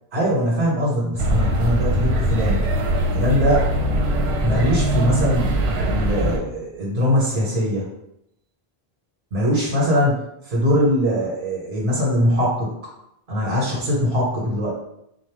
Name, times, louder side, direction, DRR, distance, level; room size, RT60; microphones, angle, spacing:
voice 1, 0.1-2.6 3.1-3.7 4.4-5.5 5.8-7.9 9.3-12.7 13.3-14.8, equal, 55° right, -5 dB, 1.6 m, -21 dB
sound 1, 1.2-6.4, right 1 dB, 75° right, 0.9 m, -21 dB
4.0 x 2.6 x 3.4 m, 0.80 s
omnidirectional pair, 1.1 m